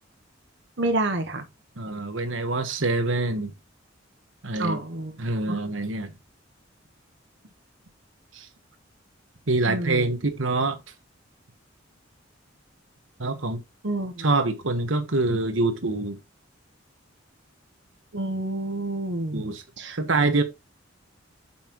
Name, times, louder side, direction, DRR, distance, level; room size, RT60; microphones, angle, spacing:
voice 1, 0.8-1.4 1.9-2.0 4.6-5.2 5.5-5.6 9.6-10.1 13.8-14.2 18.1-19.4 19.8-20.0, right 2 dB, 65° right, 1.2 m, -28 dB
voice 2, 1.8-3.5 4.4-4.8 5.2-6.1 8.3-8.5 9.5-10.8 13.2-13.6 14.2-16.2 19.3-19.6 20.0-20.4, right 2 dB, 85° right, 1.3 m, -25 dB
8.4 x 5.7 x 3.0 m
head